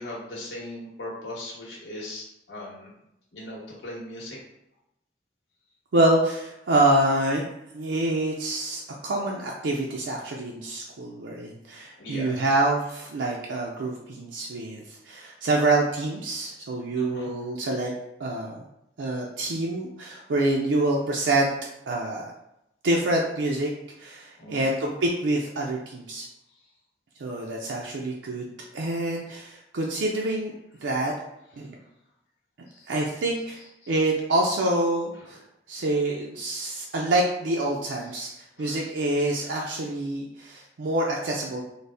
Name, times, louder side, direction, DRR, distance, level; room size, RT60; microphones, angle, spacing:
voice 1, 0.0-2.9 3.3-4.4 12.0-12.4 16.9-17.3 24.4-24.6 26.5-26.7 32.7-33.0 33.8-34.0 35.2-35.4 38.1-38.3 38.6-38.8 39.4-39.7, left 1 dB, 90° left, -5 dB, 1.1 m, -39 dB
voice 2, 5.9-7.4 7.7-17.9 18.2-18.6 19.0-21.5 21.9-22.3 22.8-23.7 24.0-26.3 27.2-28.5 28.7-30.5 30.8-31.1 31.6-31.7 32.9-33.6 33.9-35.4 35.7-38.3 38.6-41.6, right 2 dB, 90° right, -1 dB, 0.4 m, -26 dB
4.0 x 2.0 x 3.3 m, 0.83 s
head